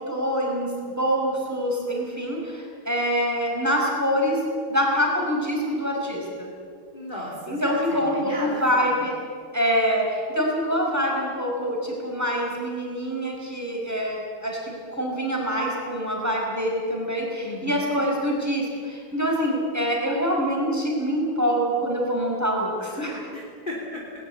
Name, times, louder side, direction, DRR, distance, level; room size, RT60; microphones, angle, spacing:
voice 1, 0.0-4.4 4.7-6.5 7.5-9.2 9.5-23.3, equal, 5° right, -1 dB, 5.0 m, -25 dB
voice 2, 6.9-8.6 17.4-17.8 23.3-24.0, left 1 dB, 20° left, -3 dB, 3.4 m, -35 dB
19.5 x 19.5 x 8.6 m, 2.2 s
omnidirectional pair, 2.3 m